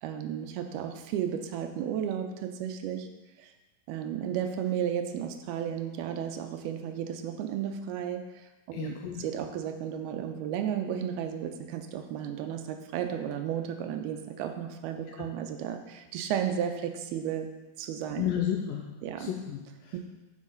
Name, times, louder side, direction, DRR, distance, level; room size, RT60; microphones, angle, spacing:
voice 1, 0.0-3.1 3.4-3.5 3.9-17.5 17.8-18.3 19.0-19.3 19.9-20.0, right 9 dB, 90° right, 6 dB, 2.6 m, -33 dB
voice 2, 8.7-9.3 15.0-15.3 18.2-20.0, left 10 dB, 85° left, 3 dB, 2.0 m, -33 dB
9.4 x 7.2 x 3.9 m, 1.1 s
omnidirectional pair, 4.5 m